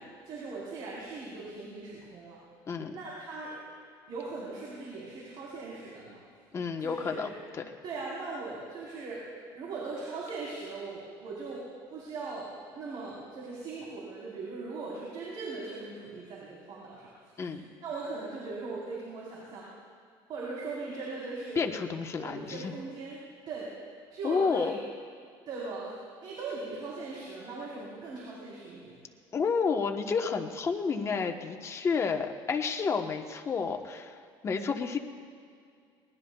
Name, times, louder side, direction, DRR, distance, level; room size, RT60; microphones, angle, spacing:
voice 1, 0.0-2.4 2.9-3.6 4.1-6.2 6.8-7.3 7.8-9.2 9.5-17.1 17.4-19.7 20.3-21.6 22.2-23.2 23.5-23.7 24.1-24.8 25.5-25.9 26.2-29.0, right 3 dB, 50° right, -6 dB, 4.0 m, -39 dB
voice 2, 2.7-3.0 6.5-7.6 17.4-17.6 21.6-22.7 24.2-24.8 29.3-34.2 34.4-35.0, left 5 dB, 30° left, 4 dB, 1.1 m, -30 dB
23.0 x 19.5 x 2.3 m, 2.3 s
cardioid pair, 130°, 10 cm